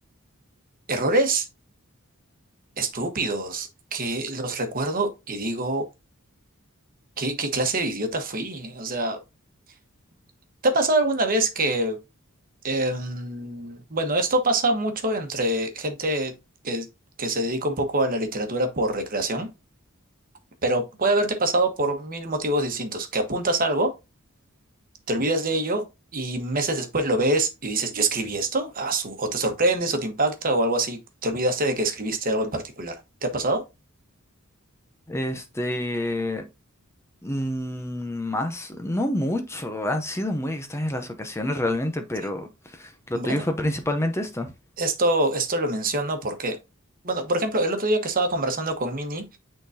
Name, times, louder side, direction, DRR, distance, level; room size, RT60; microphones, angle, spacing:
voice 1, 0.9-1.5 2.8-5.9 7.2-9.2 10.6-12.0 12.6-16.3 16.6-16.9 17.2-19.5 20.6-23.9 25.1-25.8 26.1-33.6 43.1-43.4 44.8-46.6 47.0-49.3, right 2 dB, 40° right, 1.2 m, -25 dB
voice 2, 35.1-36.4 37.2-44.5, left 1 dB, 10° left, 0.6 m, -28 dB
8.9 x 3.8 x 2.7 m
head